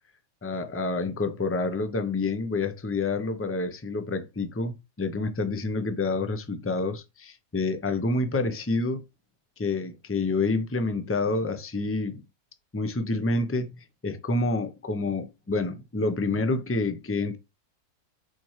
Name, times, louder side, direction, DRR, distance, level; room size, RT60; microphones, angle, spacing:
voice 1, 0.4-9.0 9.6-12.2 12.7-13.7 14.0-17.4, left 3 dB, 20° left, 0.4 m, -28 dB
6.8 x 4.4 x 3.2 m
omnidirectional pair, 1.6 m